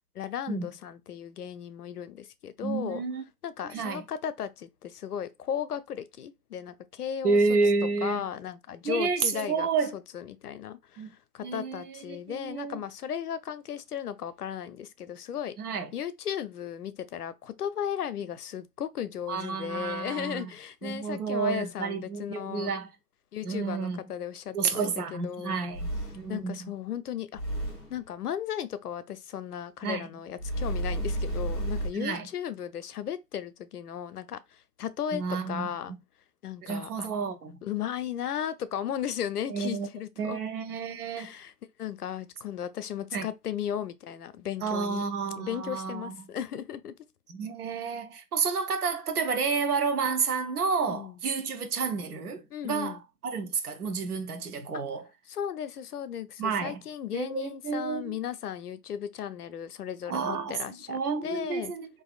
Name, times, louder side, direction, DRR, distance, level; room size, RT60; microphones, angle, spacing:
voice 1, 0.1-3.0 3.4-7.4 8.0-15.5 15.9-22.7 23.3-25.6 26.3-27.4 27.9-35.9 36.4-37.1 37.6-40.4 41.2-41.5 41.8-45.0 45.4-47.0 50.8-51.2 52.5-53.0 54.7-54.8 55.3-61.7, left 9 dB, 70° left, 0.5 m, -36 dB
voice 2, 2.6-3.2 3.7-4.0 7.2-8.2 8.8-9.9 11.0-11.1 11.4-12.8 15.6-15.9 19.3-20.5 20.8-22.9 23.4-24.0 24.5-25.9 26.2-26.7 29.8-30.1 31.9-32.3 35.1-36.0 36.6-37.6 39.5-39.9 40.2-41.3 43.1-43.3 44.6-46.2 47.3-55.0 56.4-56.8 57.1-58.2 60.1-61.9, right 4 dB, 70° right, 0.7 m, -30 dB
sound 1, 25.7-26.4 27.3-28.0 30.4-31.9, right 1 dB, ahead, 0.4 m, -31 dB
3.0 x 2.5 x 2.4 m
hypercardioid pair, 165°, 47 cm